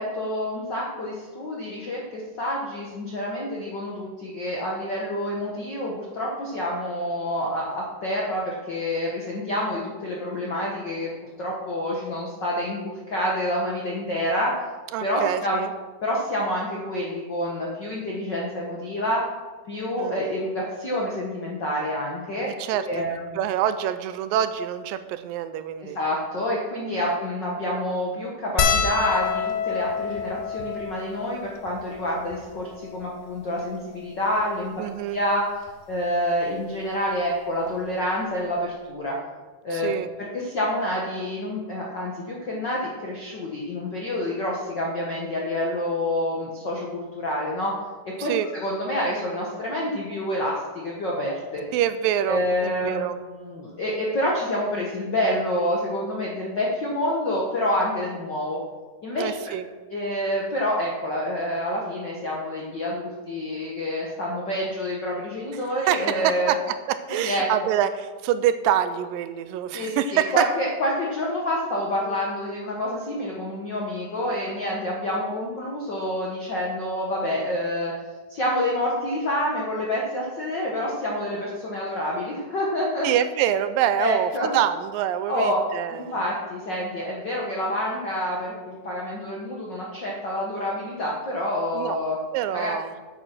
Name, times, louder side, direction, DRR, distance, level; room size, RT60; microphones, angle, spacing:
voice 1, 0.0-11.1 11.4-14.6 15.0-15.7 16.0-19.2 19.7-22.5 22.9-23.4 25.8-34.8 35.1-39.2 39.6-39.9 40.3-47.7 48.2-51.6 52.3-58.6 59.0-59.5 59.9-66.6 67.2-67.7 69.7-77.9 78.3-83.1 84.0-84.6 85.3-85.6 85.9-92.2 92.5-92.7, left 1 dB, 65° left, -3 dB, 1.1 m, -28 dB
voice 2, 14.9-15.7 20.0-20.2 22.5-23.1 23.4-26.0 34.8-35.2 39.7-40.1 48.2-48.5 51.7-53.2 59.2-59.6 65.9-66.6 66.9-70.4 83.0-86.2 91.7-92.0 92.3-92.9, right 10 dB, 85° right, 12 dB, 2.3 m, -25 dB
sound 1, 28.6-33.2 33.9-34.0 34.2-34.4 35.7-35.9 37.4-37.5 37.7-37.9, left 6 dB, 85° left, 2.7 m, -28 dB
8.8 x 7.0 x 6.0 m, 1.4 s
omnidirectional pair, 4.0 m